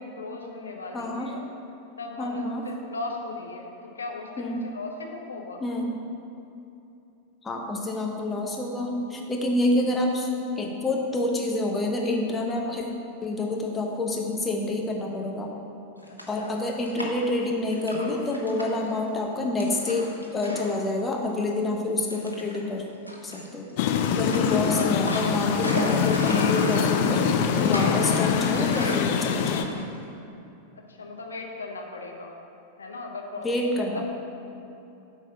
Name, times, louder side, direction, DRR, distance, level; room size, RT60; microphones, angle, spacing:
voice 1, 0.1-1.4 2.0-5.6 16.4-16.5 30.9-32.4 32.8-34.0, left 3 dB, 75° left, 1 dB, 0.9 m, -37 dB
voice 2, 0.9-1.3 2.2-2.7 4.4-4.7 5.6-6.0 7.4-10.3 10.6-12.8 13.2-15.5 16.3-22.9 23.2-23.7 24.1-29.9 33.4-34.0, left 2 dB, 15° left, 0 dB, 1.0 m, -28 dB
sound 1, 16.0-17.4 17.7-18.9 19.6-20.8 21.1-21.2 22.1-22.6 23.1-23.7 24.2-30.0, equal, 90° right, 0.9 m, -35 dB
sound 2, 23.8-29.6, left 7 dB, 50° left, 0.5 m, -24 dB
7.6 x 4.8 x 5.8 m, 2.8 s
figure-of-eight pair, 90°, 0 cm